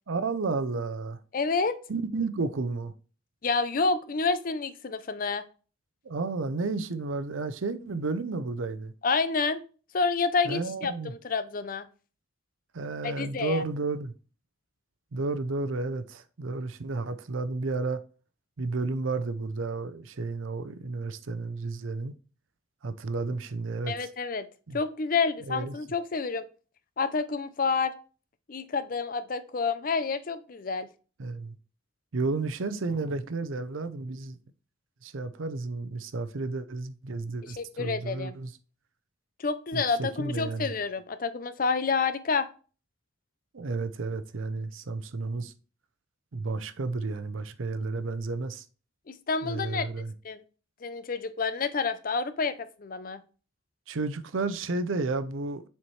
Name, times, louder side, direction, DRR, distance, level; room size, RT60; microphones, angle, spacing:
voice 1, 0.1-1.2 1.9-2.9 6.0-8.9 10.4-11.1 12.7-14.1 15.1-18.0 18.6-22.1 22.8-24.1 24.7-24.8 25.5-25.7 31.2-31.5 32.1-34.4 35.0-38.5 39.7-40.7 43.5-45.5 46.3-48.6 49.4-50.1 53.9-55.7, right 3 dB, 90° right, 0.6 m, -32 dB
voice 2, 1.3-1.8 3.4-5.4 9.0-9.6 9.9-11.9 13.0-13.6 23.9-24.5 24.7-26.4 27.0-27.9 28.5-30.9 37.6-38.4 39.4-42.5 49.1-49.9 50.2-50.4 50.8-53.2, left 4 dB, 45° left, 0.5 m, -29 dB
7.2 x 4.4 x 3.2 m
head